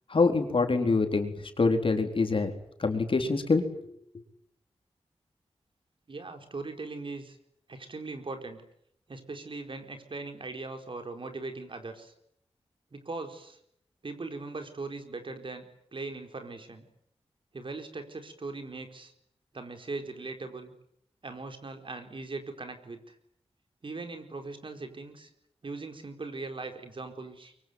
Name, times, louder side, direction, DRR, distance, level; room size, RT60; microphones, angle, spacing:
voice 1, 0.1-2.5 2.8-3.9, left 3 dB, 60° left, 5 dB, 4.2 m, -25 dB
voice 2, 6.1-7.4 7.7-8.6 9.1-12.1 12.9-13.6 14.0-15.7 15.9-16.8 17.5-19.1 19.5-20.7 21.2-23.1 23.8-25.3 25.6-27.5, right 3 dB, 55° right, 6 dB, 4.5 m, -40 dB
24.0 x 24.0 x 9.5 m, 0.72 s
wide cardioid pair, 70°, 10 cm